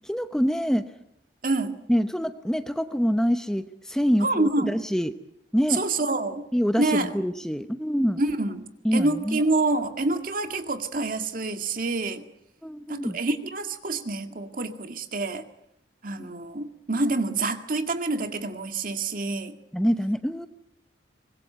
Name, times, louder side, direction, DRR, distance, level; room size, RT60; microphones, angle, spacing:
voice 1, 0.1-0.8 1.9-5.1 5.5-5.8 6.5-8.2 8.8-9.4 12.6-13.2 16.2-16.3 19.7-20.5, equal, 5° left, 9 dB, 0.8 m, -25 dB
voice 2, 1.4-1.8 4.2-4.7 5.7-6.5 6.8-7.1 8.2-8.7 8.9-12.2 12.9-15.4 16.0-19.6, right 2 dB, 50° right, 7 dB, 2.0 m, -27 dB
24.0 x 21.0 x 8.0 m, 0.80 s
head